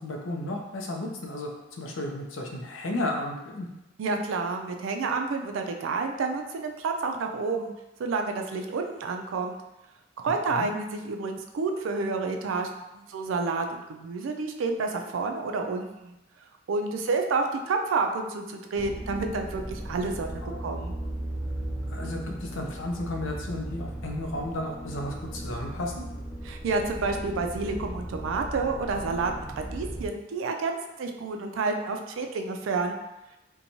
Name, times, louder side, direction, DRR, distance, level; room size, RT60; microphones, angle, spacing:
voice 1, 0.0-3.7 10.5-10.7 20.4-20.6 21.9-26.1, left 1 dB, 80° left, 2 dB, 0.5 m, -33 dB
voice 2, 4.0-7.7 8.0-9.6 10.2-16.2 16.7-20.9 26.4-33.0, right 4 dB, 80° right, 4 dB, 0.3 m, -29 dB
sound 1, 18.7-30.1, right 1 dB, 5° right, 0.4 m, -37 dB
2.9 x 2.2 x 2.6 m, 0.96 s
head